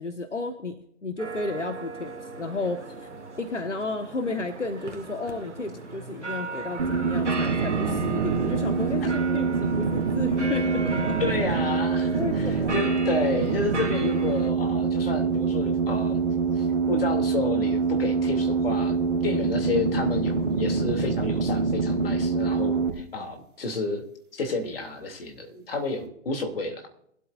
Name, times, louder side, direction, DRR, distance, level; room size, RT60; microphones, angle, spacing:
voice 1, 0.0-3.1 3.4-11.2 12.1-12.8 19.3-19.4, left 2 dB, 75° left, 7 dB, 1.6 m, -32 dB
sound 1, 1.2-14.5, right 3 dB, 70° right, 2.1 m, -37 dB
sound 2, 6.8-22.9, right 4 dB, 45° right, 4.0 m, -25 dB
voice 2, 11.2-16.2 16.6-19.0 19.2-24.0 24.3-26.9, left 3 dB, 50° left, 4 dB, 3.0 m, -31 dB
22.5 x 12.5 x 2.6 m, 0.70 s
figure-of-eight pair, 135°, 36 cm